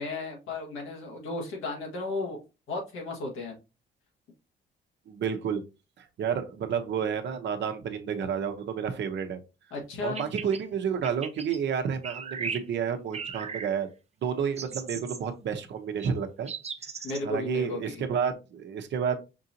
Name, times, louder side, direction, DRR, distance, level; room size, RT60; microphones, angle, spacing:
voice 1, 0.0-2.4 2.7-3.5 9.7-10.3 17.0-18.0, left 2 dB, 85° left, 1 dB, 1.4 m, -34 dB
voice 2, 5.1-5.6 6.0-9.4 10.0-13.9 14.2-16.5 17.2-19.2, right 7 dB, 65° right, 7 dB, 0.8 m, -30 dB
sound 1, 10.0-10.6 11.0-11.6 12.0-12.6 13.1-13.7 14.6-15.2 16.0-16.1 16.5-17.2, right 5 dB, 35° right, 0.7 m, -37 dB
5.4 x 2.7 x 2.6 m, 0.28 s
cardioid pair, 90°, 20 cm